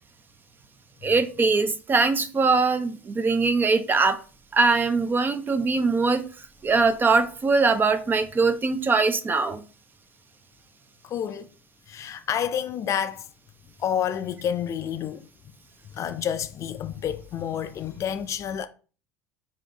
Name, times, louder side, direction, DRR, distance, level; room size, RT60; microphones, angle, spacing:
voice 1, 1.0-4.2 4.5-6.2 6.6-9.6, right 4 dB, 25° right, 0.5 m, -22 dB
voice 2, 11.0-11.5 11.9-13.3 13.8-15.3 15.9-18.7, left 9 dB, 40° left, 0.4 m, -29 dB
3.6 x 2.7 x 3.3 m
hypercardioid pair, 70°, 8 cm